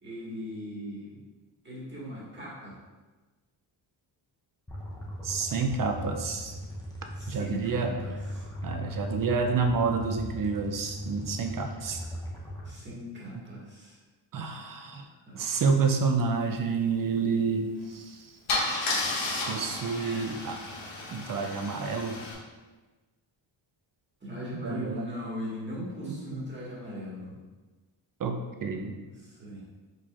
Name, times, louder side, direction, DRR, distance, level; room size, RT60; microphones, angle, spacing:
voice 1, 0.0-1.2 1.6-2.8 7.1-8.5 12.6-14.0 15.1-15.6 24.2-27.3 28.7-29.6, left 1 dB, 25° right, -7 dB, 1.5 m, -39 dB
sound 1, 4.7-12.7, equal, 10° left, 0.6 m, -38 dB
voice 2, 5.2-6.6 7.3-7.9 8.6-12.0 13.4-13.5 14.3-15.1 15.3-18.3 19.5-20.6 21.1-22.2 24.5-25.1 26.0-26.4 28.2-29.0, right 5 dB, 50° right, 5 dB, 0.4 m, -29 dB
Car / Engine starting / Idling, 17.8-17.9 18.5-22.3, left 2 dB, 80° left, 1.1 m, -32 dB
4.8 x 4.1 x 2.4 m, 1.3 s
wide cardioid pair, 140°, 46 cm